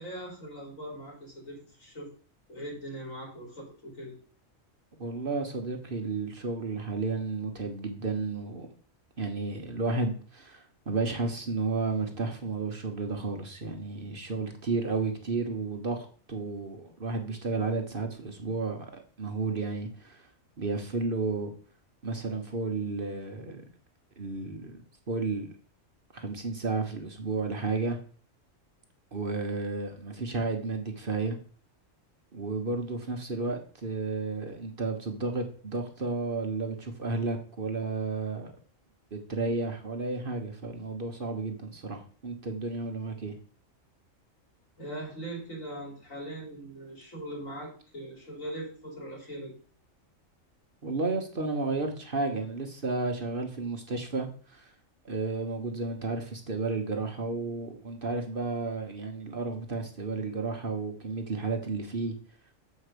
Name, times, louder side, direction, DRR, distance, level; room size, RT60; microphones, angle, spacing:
voice 1, 0.0-2.1 2.5-4.1 44.8-49.6, right 1 dB, 75° left, -3 dB, 4.1 m, -40 dB
voice 2, 5.0-8.7 9.2-20.3 20.6-21.5 22.0-23.6 24.2-25.5 26.1-28.0 29.1-31.4 32.3-38.6 39.1-43.3 50.8-54.7 55.0-62.1, right 3 dB, 45° right, 5 dB, 1.1 m, -32 dB
7.1 x 4.6 x 6.7 m, 0.43 s
omnidirectional pair, 1.4 m